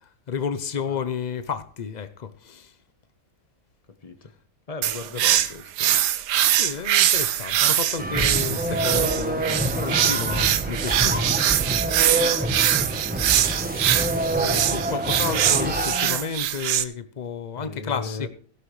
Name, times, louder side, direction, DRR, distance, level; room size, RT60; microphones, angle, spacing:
voice 1, 0.0-2.7 6.4-11.4 14.3-18.3, left 6 dB, 85° left, 0.4 m, -32 dB
voice 2, 4.0-4.3 4.7-5.9 12.1-12.4 17.6-18.3, left 4 dB, 25° left, 0.9 m, -37 dB
sound 1, 4.8-16.8, right 11 dB, 90° right, 1.3 m, -23 dB
sound 2, 8.0-16.3, right 1 dB, 10° right, 0.7 m, -27 dB
17.0 x 11.5 x 3.2 m
omnidirectional pair, 1.8 m